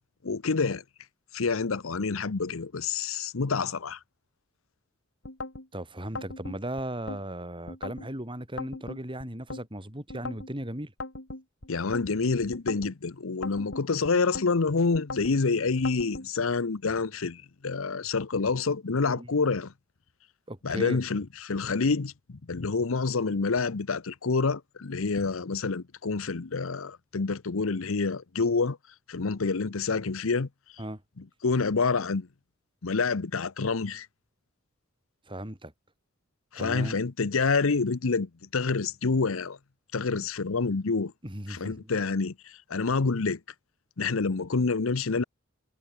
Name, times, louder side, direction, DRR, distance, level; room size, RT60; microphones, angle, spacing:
voice 1, 0.2-0.8 1.3-4.0 11.7-19.7 20.6-28.8 29.1-30.5 31.2-32.3 32.8-34.1 36.5-39.6 39.9-41.1 41.5-43.4 44.0-45.2, left 4 dB, 80° left, 0.8 m, -27 dB
sound 1, 5.2-5.7 6.2-7.2 7.7-8.1 8.6-9.6 10.1-10.5 11.0-12.1 12.5-12.9 13.4-14.5 14.9-15.4 15.9-16.3, left 2 dB, 60° left, 4.6 m, -39 dB
voice 2, 5.7-10.9 19.1-19.3 20.5-21.0 30.8-31.0 35.3-35.7 36.6-37.0 41.2-41.9, right 1 dB, 25° right, 6.0 m, -37 dB
head